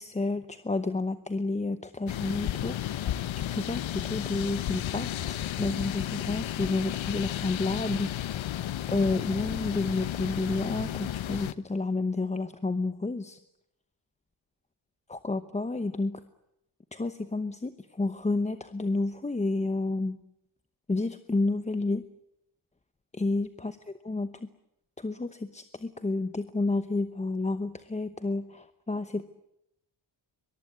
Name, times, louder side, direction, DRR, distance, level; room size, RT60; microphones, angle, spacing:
voice 1, 0.0-8.3 8.9-13.4 15.1-16.2 16.9-20.2 20.9-22.0 23.1-23.8 24.0-24.5 25.0-29.2, left 3 dB, 15° left, 10 dB, 0.9 m, -30 dB
sound 1, 2.1-11.5, left 12 dB, 75° left, 1.0 m, -33 dB
23.5 x 22.0 x 9.6 m, 0.82 s
wide cardioid pair, 175°, 47 cm